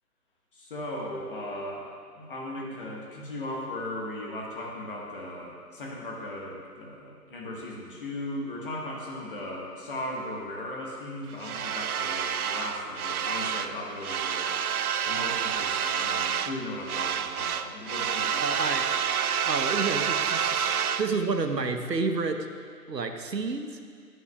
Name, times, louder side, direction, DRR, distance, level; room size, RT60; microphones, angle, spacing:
voice 1, 0.5-14.6 15.0-18.7, left 1 dB, 35° left, -2 dB, 1.3 m, -37 dB
sound 1, 11.4-13.7 14.0-16.6 16.8-21.1, right 8 dB, 65° right, 0.5 m, -28 dB
voice 2, 18.4-18.9 19.4-22.5 22.9-23.8, right 4 dB, 90° right, 6 dB, 1.0 m, -30 dB
14.5 x 9.8 x 2.3 m, 2.1 s
figure-of-eight pair, 150°, 48 cm